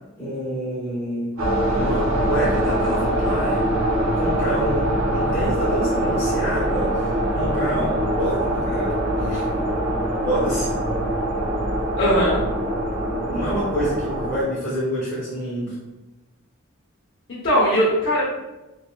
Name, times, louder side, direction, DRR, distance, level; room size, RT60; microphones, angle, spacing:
voice 1, 0.2-3.7 4.2-9.5 10.2-10.7 13.3-15.8, equal, 10° left, -9 dB, 0.7 m, -28 dB
sound 1, 1.4-14.4, right 1 dB, 75° right, 0.7 m, -23 dB
voice 2, 12.0-12.4 17.3-18.2, equal, 55° left, -8 dB, 0.8 m, -19 dB
3.4 x 2.3 x 2.4 m, 1.0 s
head